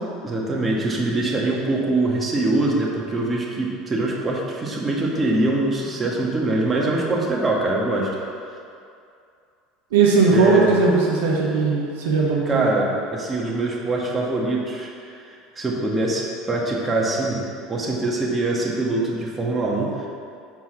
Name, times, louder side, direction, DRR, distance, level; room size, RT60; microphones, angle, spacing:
voice 1, 0.2-8.1 10.3-10.7 12.4-14.9 15.2-17.4 17.7-20.1, right 2 dB, 20° right, -3 dB, 1.5 m, -23 dB
voice 2, 9.9-12.7, right 4 dB, 75° right, -3 dB, 1.1 m, -18 dB
5.9 x 4.6 x 6.0 m, 2.5 s
hypercardioid pair, 75°, 0 cm